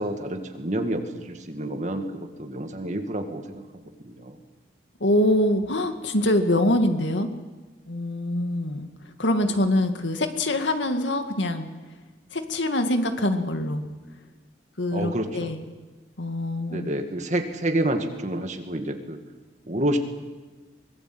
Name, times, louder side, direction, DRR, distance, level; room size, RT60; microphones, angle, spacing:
voice 1, 0.0-3.4 4.0-4.4 14.9-15.5 16.7-19.2 19.7-20.0, right 1 dB, 40° right, 5 dB, 2.2 m, -28 dB
voice 2, 5.0-7.3 7.9-8.9 9.2-11.7 12.3-13.8 14.8-15.6 16.2-16.9, left 1 dB, 80° left, 7 dB, 2.1 m, -24 dB
24.0 x 21.0 x 7.9 m, 1.3 s
head